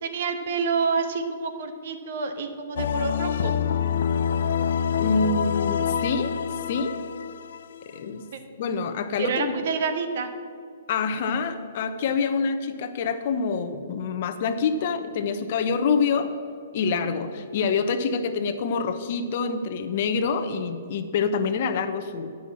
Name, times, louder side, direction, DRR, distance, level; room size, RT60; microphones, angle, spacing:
voice 1, 0.0-3.5 8.3-8.4 9.2-10.3, right 5 dB, 60° right, 7 dB, 1.1 m, -28 dB
sound 1, 2.8-8.2, left 7 dB, 65° left, 0.4 m, -26 dB
voice 2, 5.0-7.0 7.8-8.3 8.6-9.5 10.9-16.3 16.7-22.3, left 5 dB, 50° left, 8 dB, 0.8 m, -26 dB
9.7 x 6.3 x 7.2 m, 2.3 s
hypercardioid pair, 135°, 0 cm